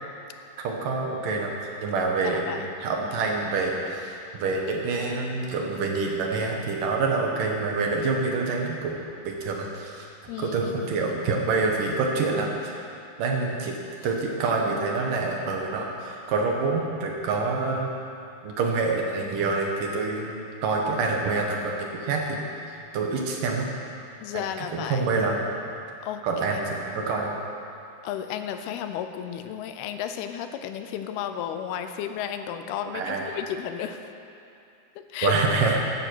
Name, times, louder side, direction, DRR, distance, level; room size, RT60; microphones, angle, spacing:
voice 1, 0.6-1.5 1.8-10.1 10.4-12.7 13.2-17.9 18.4-22.4 22.7-23.7 24.3-25.4 26.2-27.3 32.9-33.4 35.2-35.8, right 3 dB, 65° right, 0 dB, 2.6 m, -27 dB
voice 2, 2.2-2.7 10.3-11.3 24.2-25.0 26.0-26.2 26.5-26.6 28.0-34.0 35.0-35.4, left 9 dB, 80° left, 8 dB, 2.6 m, -33 dB
16.0 x 10.0 x 6.2 m, 2.6 s
omnidirectional pair, 4.6 m